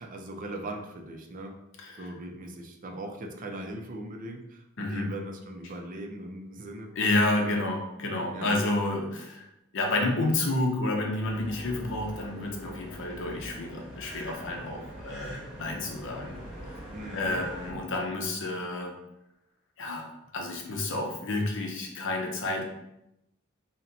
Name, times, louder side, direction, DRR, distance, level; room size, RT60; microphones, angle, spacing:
voice 1, 0.0-1.6 2.0-6.9 7.4-7.5 8.3-8.6 16.9-17.5, right 1 dB, 40° right, 3 dB, 0.5 m, -39 dB
voice 2, 7.0-16.4 17.1-19.0 19.8-20.1 20.3-22.6, left 2 dB, 65° left, 2 dB, 0.7 m, -30 dB
sound 1, 11.2-17.7, equal, 5° right, 1.1 m, -43 dB
4.1 x 2.2 x 3.9 m, 0.88 s
head